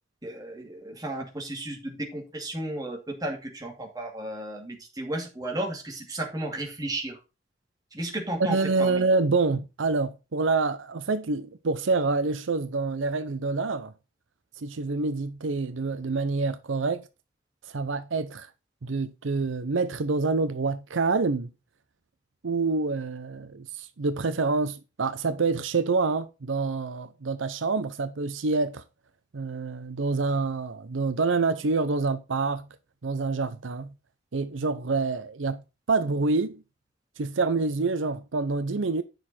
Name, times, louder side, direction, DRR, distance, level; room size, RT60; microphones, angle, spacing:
voice 1, 0.2-7.2 7.9-9.1, right 1 dB, 20° right, 2.3 m, -34 dB
voice 2, 8.5-13.9 14.6-17.0 17.7-18.5 18.8-21.5 22.4-28.8 29.3-32.7 33.0-33.9 34.3-35.6 35.9-36.6 37.2-39.0, right 3 dB, 80° right, 0.7 m, -27 dB
9.4 x 6.5 x 4.3 m
head